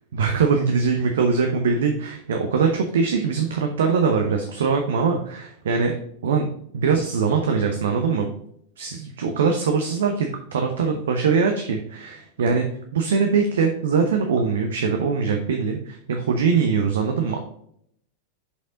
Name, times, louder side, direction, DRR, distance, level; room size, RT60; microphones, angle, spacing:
voice 1, 0.1-5.9 6.2-6.5 6.7-8.3 8.8-12.7 12.9-17.4, right 5 dB, 60° right, 4 dB, 0.8 m, -22 dB
6.6 x 5.4 x 3.7 m, 0.69 s
figure-of-eight pair, 90°, 0 cm